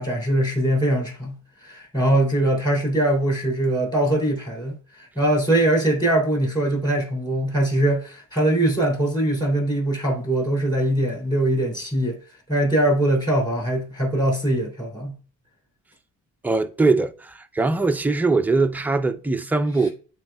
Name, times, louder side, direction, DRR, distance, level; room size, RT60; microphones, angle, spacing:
voice 1, 0.0-1.4 1.6-12.2 12.5-15.1, right 1 dB, 10° left, 3.2 m, -22 dB
voice 2, 16.4-19.9, right 3 dB, 5° right, 0.4 m, -21 dB
12.0 x 4.1 x 2.3 m
cardioid pair, 125°, 35 cm